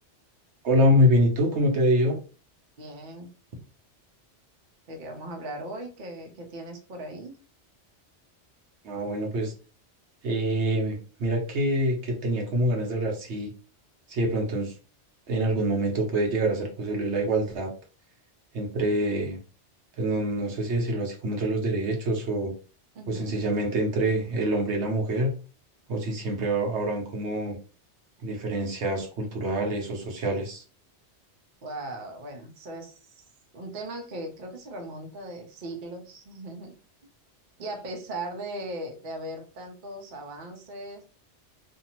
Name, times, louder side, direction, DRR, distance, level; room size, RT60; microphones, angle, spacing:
voice 1, 0.6-2.2 8.8-9.5 10.2-13.5 14.1-14.7 15.3-17.7 18.5-19.4 20.0-22.5 23.1-25.3 25.9-27.6 28.2-30.6, equal, 75° right, 2 dB, 1.1 m, -25 dB
voice 2, 2.8-3.3 4.9-7.4 22.9-23.4 31.6-33.2 33.5-36.8 37.6-41.0, right 1 dB, 50° right, 2 dB, 0.8 m, -38 dB
2.6 x 2.4 x 2.9 m, 0.35 s
omnidirectional pair, 1.2 m